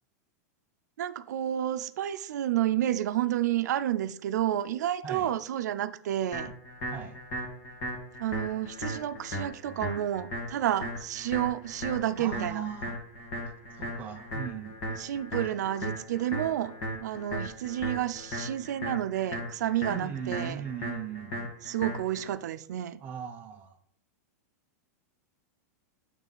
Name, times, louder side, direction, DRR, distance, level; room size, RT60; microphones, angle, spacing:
voice 1, 1.0-6.5 8.2-12.6 14.9-16.7 17.0-20.6 21.6-23.0, right 12 dB, 90° right, 0.4 m, -30 dB
voice 2, 5.0-5.3 6.9-7.2 12.2-12.9 13.7-14.8 19.9-21.5 23.0-23.8, right 8 dB, 20° right, 0.4 m, -38 dB
sound 1, 6.3-22.3, equal, 30° left, 1.5 m, -37 dB
9.0 x 3.2 x 3.9 m
supercardioid pair, 180°, 9 cm